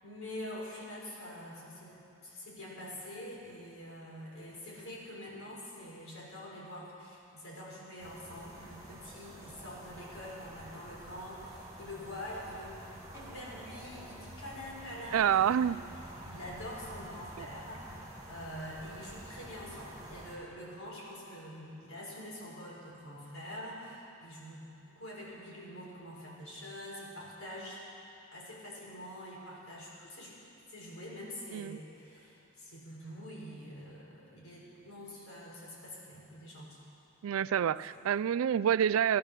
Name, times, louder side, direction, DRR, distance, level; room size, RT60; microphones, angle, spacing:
voice 1, 0.0-15.8 16.2-27.8 28.3-30.4 30.7-36.8 37.6-38.1, left 1 dB, 75° left, -4 dB, 4.4 m, -45 dB
sound 1, 8.0-20.4, right 1 dB, 15° right, 2.5 m, -49 dB
voice 2, 15.1-15.8 17.4-17.5 31.5-31.8 37.2-39.2, right 9 dB, 75° right, 17 dB, 0.3 m, -27 dB
16.5 x 12.5 x 6.6 m, 2.9 s
head